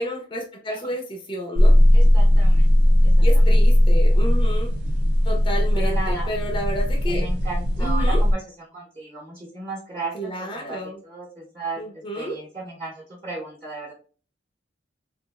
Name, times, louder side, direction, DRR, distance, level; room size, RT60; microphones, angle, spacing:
voice 1, 0.0-1.8 3.2-4.7 5.2-7.3 7.8-8.2 10.1-11.0 11.8-12.4, equal, 30° left, 2 dB, 0.4 m, -30 dB
sound 1, 1.6-8.3, left 1 dB, 75° right, 0.5 m, -17 dB
voice 2, 1.9-3.3 3.8-4.3 5.2-5.3 5.7-6.3 7.1-8.4 8.7-13.9, right 3 dB, 30° right, -3 dB, 0.7 m, -35 dB
2.9 x 2.3 x 2.3 m, 0.40 s
head